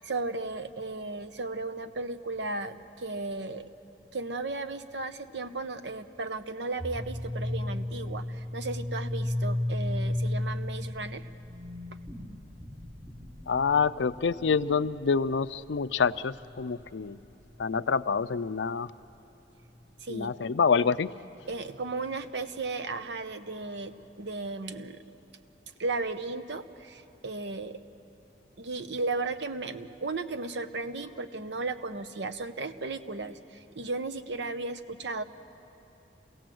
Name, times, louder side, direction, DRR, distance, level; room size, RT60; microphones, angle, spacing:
voice 1, 0.0-3.6 4.1-11.3 20.0-20.3 21.5-25.0 25.8-27.8 28.6-35.2, right 3 dB, 75° right, 10 dB, 0.9 m, -35 dB
sound 1, 6.8-18.0, left 1 dB, 10° right, 0.8 m, -34 dB
voice 2, 13.5-17.2 17.6-18.9 20.1-21.1, left 5 dB, 80° left, 15 dB, 0.5 m, -27 dB
27.5 x 17.0 x 7.8 m, 2.9 s
head